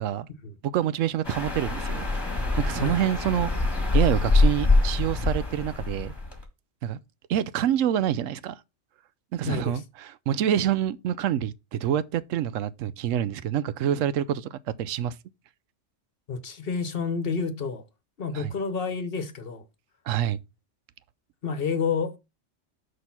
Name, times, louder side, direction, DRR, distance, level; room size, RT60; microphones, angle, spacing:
voice 1, 0.6-2.1 2.6-3.5 3.9-6.1 6.8-7.0 7.3-8.6 9.3-15.2 18.3-18.5 20.1-20.4, right 10 dB, 85° right, 0.9 m, -27 dB
sound 1, 1.2-6.4, left 2 dB, 20° left, 1.9 m, -24 dB
voice 2, 9.5-9.8 16.3-17.8 18.2-19.6 21.4-22.1, left 5 dB, 50° left, 1.1 m, -29 dB
6.3 x 5.2 x 5.7 m
omnidirectional pair, 1.3 m